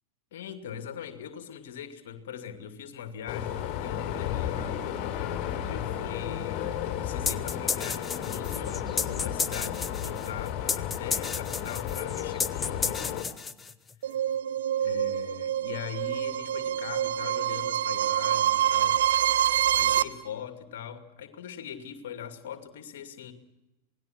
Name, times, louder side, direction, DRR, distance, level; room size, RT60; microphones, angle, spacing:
voice 1, 0.3-5.2 5.6-13.3 14.8-19.0 19.7-23.3, left 8 dB, 55° left, 8 dB, 2.5 m, -41 dB
sound 1, 3.3-13.2, left 10 dB, 40° left, 3.7 m, -33 dB
sound 2, 7.3-14.0, left 5 dB, 15° left, 0.9 m, -32 dB
sound 3, 14.0-20.0, right 11 dB, 60° right, 0.9 m, -26 dB
27.5 x 19.0 x 6.1 m, 0.99 s
figure-of-eight pair, 90°, 0 cm